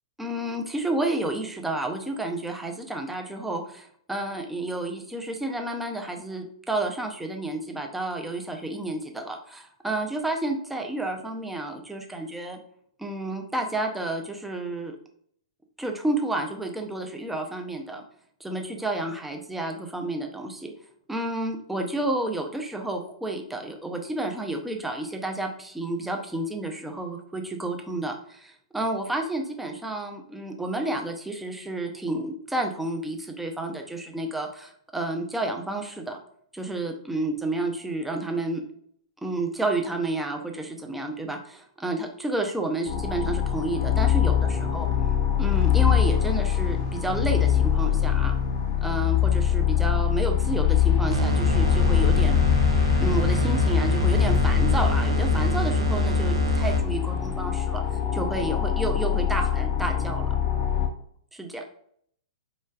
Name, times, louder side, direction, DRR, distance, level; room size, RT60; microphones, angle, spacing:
voice 1, 0.2-12.6 13.0-15.0 15.8-18.0 18.4-20.7 21.1-36.2 36.5-38.6 39.2-44.9 45.4-48.4 48.8-52.4 53.0-57.8 58.1-60.3 61.3-61.6, right 2 dB, 5° right, 3 dB, 0.6 m, -30 dB
sound 1, 42.9-60.9, left 9 dB, 40° left, 0.5 m, -24 dB
sound 2, 51.1-57.0, equal, 70° right, 0.5 m, -24 dB
4.4 x 3.1 x 2.4 m, 0.64 s
figure-of-eight pair, 105°, 3 cm